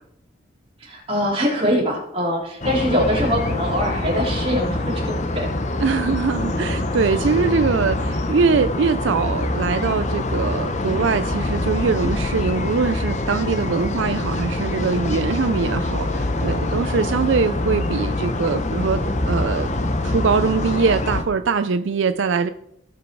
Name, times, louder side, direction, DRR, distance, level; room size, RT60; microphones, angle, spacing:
voice 1, 0.8-5.5, equal, 30° right, -3 dB, 3.5 m, -23 dB
sound 1, 2.6-21.2, left 2 dB, 35° left, 0.9 m, -24 dB
voice 2, 5.8-19.0 19.3-19.7 20.0-22.5, right 5 dB, 70° right, 10 dB, 0.4 m, -22 dB
17.5 x 6.1 x 4.7 m, 0.77 s
head